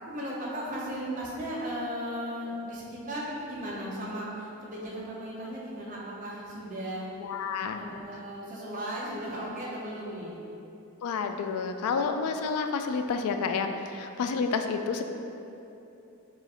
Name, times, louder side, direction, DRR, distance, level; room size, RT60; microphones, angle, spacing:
voice 1, 0.1-7.1 7.7-10.5, equal, 35° right, -5 dB, 0.7 m, -36 dB
voice 2, 7.2-7.8 11.0-15.0, left 5 dB, 85° left, 7 dB, 0.3 m, -30 dB
4.8 x 2.5 x 4.2 m, 2.9 s
head